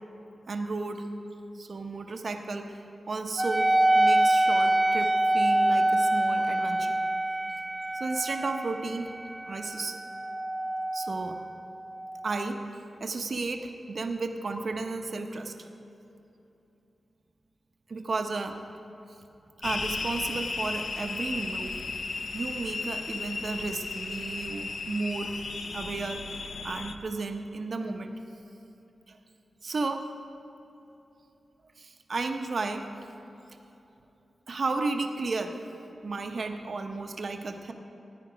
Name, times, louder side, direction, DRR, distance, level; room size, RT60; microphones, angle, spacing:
voice 1, 0.5-1.1 1.5-2.7 3.1-7.0 7.9-9.1 9.5-10.0 10.9-11.4 12.2-12.6 13.0-15.5 17.9-18.6 19.6-21.8 22.3-25.3 25.7-28.1 29.1-29.2 29.6-30.1 31.8-32.8 34.5-35.5 36.0-37.7, right 3 dB, 50° right, 5 dB, 0.8 m, -33 dB
Wind instrument woodwind instrument, 3.4-12.3, right 1 dB, 10° right, 0.4 m, -26 dB
sound 1, 19.6-27.0, left 3 dB, 55° left, 0.6 m, -35 dB
15.0 x 10.0 x 5.0 m, 2.9 s
wide cardioid pair, 155°, 0 cm